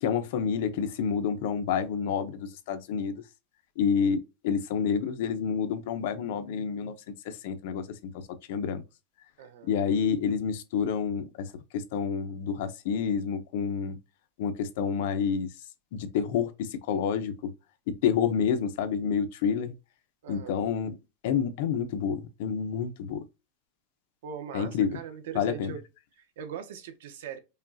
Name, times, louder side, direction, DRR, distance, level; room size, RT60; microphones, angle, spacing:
voice 1, 0.0-3.2 3.8-6.9 7.2-8.2 8.5-8.8 9.6-11.5 11.7-14.0 14.4-15.5 15.9-17.5 17.9-19.7 20.3-20.9 21.2-23.2 24.5-25.0 25.3-25.7, left 7 dB, 65° left, 0.7 m, -28 dB
voice 2, 9.4-9.7 20.2-20.6 24.2-25.8 26.1-27.4, right 8 dB, 80° right, 0.9 m, -40 dB
5.2 x 2.3 x 2.7 m
supercardioid pair, 165°, 0 cm